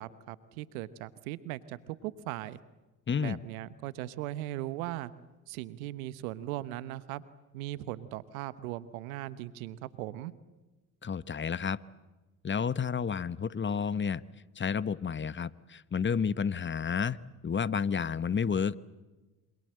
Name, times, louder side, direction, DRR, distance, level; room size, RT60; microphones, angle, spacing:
voice 1, 0.0-2.6 3.2-5.1 5.5-7.2 7.5-10.3, right 15 dB, 80° right, 17 dB, 1.1 m, -38 dB
voice 2, 3.1-3.4 11.0-11.8 12.4-14.2 14.6-18.7, left 6 dB, 25° left, 18 dB, 1.1 m, -31 dB
27.0 x 26.0 x 7.7 m, 1.2 s
hypercardioid pair, 55°, 41 cm